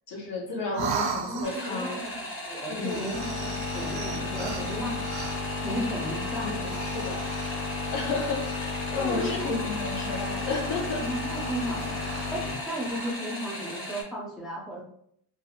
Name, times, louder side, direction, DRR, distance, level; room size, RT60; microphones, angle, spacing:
voice 1, 0.1-2.0 2.6-3.1 6.4-7.2 7.9-11.0, left 3 dB, 65° left, 0 dB, 0.8 m, -32 dB
voice 2, 0.7-5.0 5.6-6.8 9.0-9.6 11.0-12.0 12.3-14.8, equal, ahead, -3 dB, 0.4 m, -35 dB
sound 1, 0.7-1.9 2.8-5.6 6.6-7.7 8.4-8.8 9.1-10.3 10.6-10.9 11.3-12.4 12.7-13.1, right 6 dB, 75° right, 0.5 m, -38 dB
sound 2, 1.4-14.0, left 1 dB, 25° left, 0.8 m, -37 dB
sound 3, 3.1-12.7, left 4 dB, 90° left, 1.0 m, -34 dB
2.6 x 2.0 x 2.7 m, 0.69 s
wide cardioid pair, 125°, 46 cm